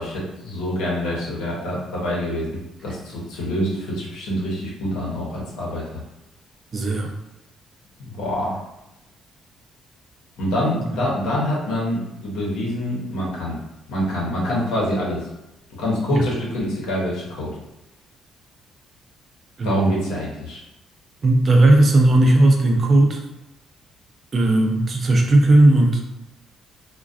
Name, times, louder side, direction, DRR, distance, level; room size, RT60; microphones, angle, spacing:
voice 1, 0.0-6.0 8.0-8.6 10.4-13.6 13.9-15.3 15.8-17.6 19.6-20.6, equal, 90° left, -4 dB, 0.8 m, -26 dB
voice 2, 6.7-7.1 16.1-16.3 19.6-19.8 21.2-23.2 24.3-26.0, right 2 dB, 45° right, 2 dB, 0.5 m, -16 dB
2.3 x 2.2 x 2.5 m, 0.89 s
cardioid pair, 80°, 0 cm